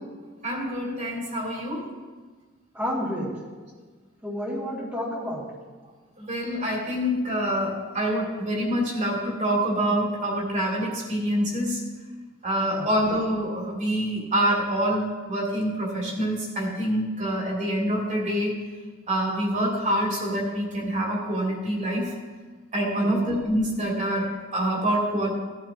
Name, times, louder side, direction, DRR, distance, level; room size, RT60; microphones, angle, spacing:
voice 1, 0.4-1.9 6.2-11.8 12.4-18.6 19.1-22.1 22.7-25.3, equal, 35° right, -3 dB, 3.0 m, -26 dB
voice 2, 2.7-3.3 4.2-5.4 12.7-13.0 23.0-23.3, equal, 5° right, -7 dB, 2.6 m, -30 dB
17.5 x 12.5 x 3.0 m, 1.4 s
head